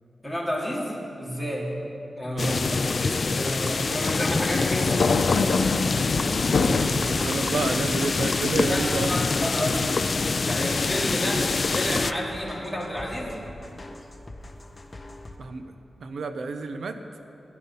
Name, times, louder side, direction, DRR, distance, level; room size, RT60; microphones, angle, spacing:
voice 1, 0.2-1.7 2.2-2.6 2.9-5.2 8.7-9.9 10.5-11.5 11.7-13.3, equal, 5° right, -3 dB, 3.1 m, -30 dB
voice 2, 2.3-2.6 3.6-3.8 6.6-9.5 10.6-10.8 15.4-15.7 16.0-17.0, right 4 dB, 80° right, 8 dB, 0.8 m, -31 dB
sound 1, 2.4-12.1, left 4 dB, 50° left, 0.4 m, -25 dB
sound 2, 4.0-7.0 7.5-8.4, left 4 dB, 85° left, 0.8 m, -26 dB
sound 3, 5.0-15.4, left 1 dB, 30° left, 1.3 m, -43 dB
17.0 x 11.0 x 5.6 m, 2.9 s
wide cardioid pair, 80°, 0 cm